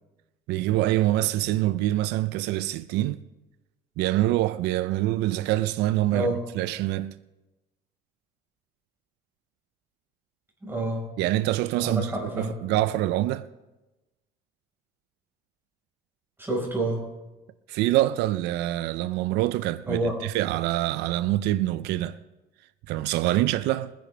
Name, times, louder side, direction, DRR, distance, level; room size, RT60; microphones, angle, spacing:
voice 1, 0.5-3.2 4.0-6.3 6.5-7.2 11.2-13.5 17.7-22.2 22.9-23.9, right 15 dB, 90° right, 0.4 m, -25 dB
voice 2, 10.6-11.0 11.8-12.5 16.4-17.0 19.9-20.1, right 2 dB, 15° right, 4.6 m, -28 dB
22.0 x 10.5 x 3.3 m
cardioid pair, 110°, 17 cm